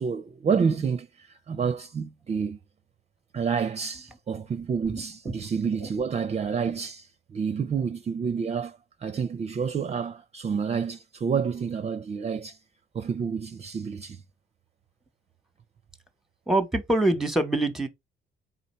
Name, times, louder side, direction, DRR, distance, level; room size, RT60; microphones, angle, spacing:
voice 1, 0.0-2.6 3.3-12.6 12.9-14.2, right 6 dB, 35° right, 0.5 m, -29 dB
voice 2, 16.5-17.9, right 1 dB, ahead, 1.0 m, -24 dB
3.9 x 2.8 x 4.2 m
cardioid pair, 90°, 20 cm